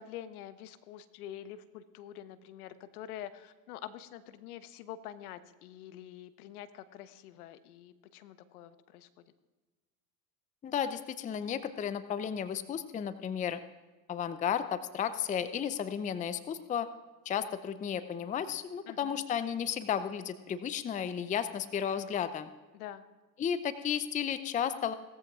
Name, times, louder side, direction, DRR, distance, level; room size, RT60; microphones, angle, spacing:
voice 1, 0.0-9.2 18.9-19.2 22.7-23.0, left 11 dB, 70° left, 12 dB, 1.1 m, -46 dB
voice 2, 10.6-13.6 14.1-16.9 17.3-22.5 23.4-24.9, left 8 dB, 15° left, 13 dB, 0.5 m, -33 dB
18.5 x 14.0 x 2.4 m, 1.2 s
hypercardioid pair, 85°, 47 cm